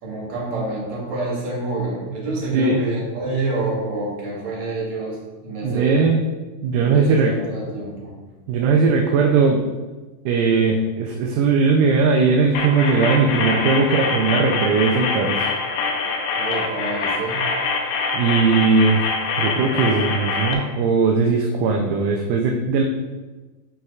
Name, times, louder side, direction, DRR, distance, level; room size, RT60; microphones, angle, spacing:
voice 1, 0.0-5.2 5.4-6.1 6.8-8.1 16.3-17.4, right 2 dB, 60° right, -4 dB, 2.6 m, -27 dB
voice 2, 5.6-6.3 6.6-7.3 8.5-9.6 10.3-15.5 18.1-19.1 19.4-22.8, right 4 dB, 80° right, 1 dB, 2.1 m, -19 dB
sound 1, 12.5-20.5, left 4 dB, 85° left, 2.6 m, -24 dB
11.0 x 4.5 x 2.4 m, 1.2 s
omnidirectional pair, 4.1 m